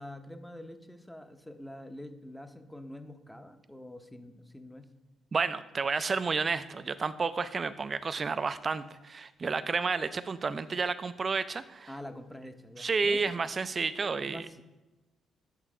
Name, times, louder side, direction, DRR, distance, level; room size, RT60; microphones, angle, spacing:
voice 1, 0.0-4.9 11.9-13.5 14.0-14.6, left 1 dB, 5° left, 7 dB, 0.6 m, -46 dB
voice 2, 5.3-11.9 12.8-14.5, right 4 dB, 35° right, 13 dB, 0.4 m, -31 dB
8.2 x 3.3 x 4.9 m, 1.1 s
cardioid pair, 90°, 0 cm